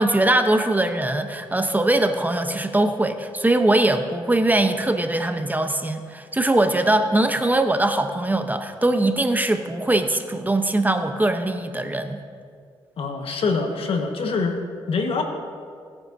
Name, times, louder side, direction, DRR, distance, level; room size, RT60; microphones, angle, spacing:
voice 1, 0.0-12.2, right 1 dB, 15° right, 7 dB, 0.9 m, -21 dB
voice 2, 13.0-14.6 14.9-15.2, left 4 dB, 70° left, 3 dB, 1.5 m, -24 dB
19.5 x 9.3 x 2.7 m, 2.1 s
cardioid pair, 60°, 10 cm